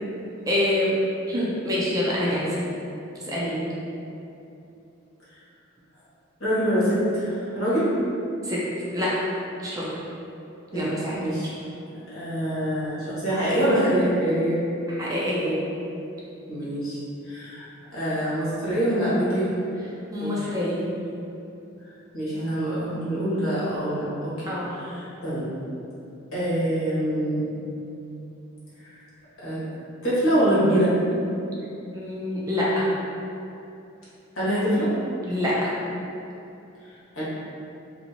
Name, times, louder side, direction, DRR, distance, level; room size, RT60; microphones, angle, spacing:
voice 1, 0.5-1.0 1.3-2.5 3.2-3.6 8.4-8.6 8.9-9.3 9.6-9.9 10.7-11.2 15.0-15.5 20.1-20.8 24.5-24.7 31.1-31.2 31.9-32.9 35.3-35.7, left 1 dB, 15° right, -6 dB, 0.4 m, -26 dB
voice 2, 6.4-7.9 10.7-10.8 11.1-11.5 12.1-14.6 16.5-17.0 17.2-17.6 17.9-19.5 20.2-20.7 22.1-25.5 26.3-27.5 29.4-29.6 30.0-30.9 34.4-34.9 37.2-37.3, equal, 90° left, -10 dB, 1.2 m, -24 dB
2.7 x 2.6 x 2.8 m, 2.8 s
head